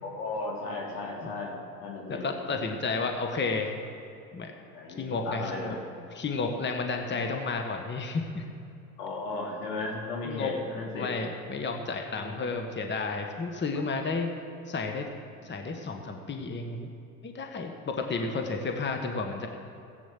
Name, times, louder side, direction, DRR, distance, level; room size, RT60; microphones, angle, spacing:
voice 1, 0.0-2.2 4.7-5.8 9.0-11.1 12.1-12.3 13.7-13.8, left 3 dB, 80° left, -2 dB, 3.4 m, -35 dB
voice 2, 2.1-3.7 4.3-4.5 5.0-5.8 6.1-8.5 10.2-10.5 10.9-14.3 14.7-15.1 15.4-16.9 17.2-19.5, left 4 dB, 25° left, 4 dB, 1.5 m, -32 dB
15.5 x 8.6 x 7.5 m, 2.6 s
hypercardioid pair, 80°, 45 cm